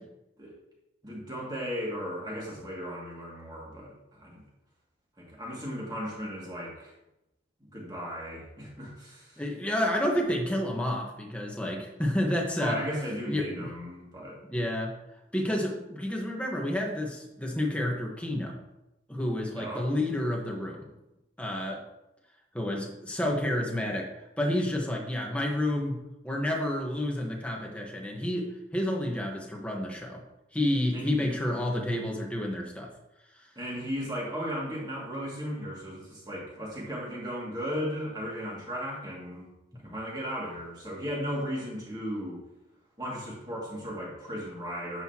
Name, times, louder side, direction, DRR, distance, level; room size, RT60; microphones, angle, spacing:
voice 1, 1.0-4.4 5.2-6.9 7.7-9.4 12.6-14.4 19.6-19.9 30.9-31.2 33.6-39.5 39.7-42.4 43.0-45.0, equal, 20° right, -4 dB, 2.4 m, -36 dB
voice 2, 9.4-12.8 13.3-13.5 14.5-14.9 15.3-18.6 19.1-20.9 21.4-21.8 22.5-24.0 24.4-26.0 26.2-30.2 30.5-32.9 33.3-33.4, left 1 dB, 5° left, -1 dB, 1.3 m, -30 dB
10.0 x 7.9 x 3.0 m, 0.93 s
head